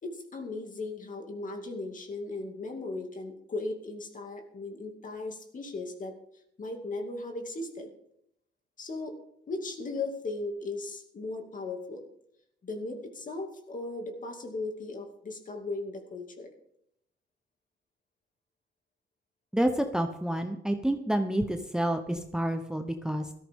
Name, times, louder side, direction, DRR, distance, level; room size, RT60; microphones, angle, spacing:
voice 1, 0.0-6.2 6.6-7.9 8.8-9.2 9.5-12.1 12.6-16.5, left 2 dB, 45° left, 4 dB, 2.5 m, -37 dB
voice 2, 19.5-23.3, right 1 dB, 5° right, 6 dB, 0.9 m, -29 dB
16.5 x 13.5 x 3.7 m, 0.75 s
cardioid pair, 110°, 19 cm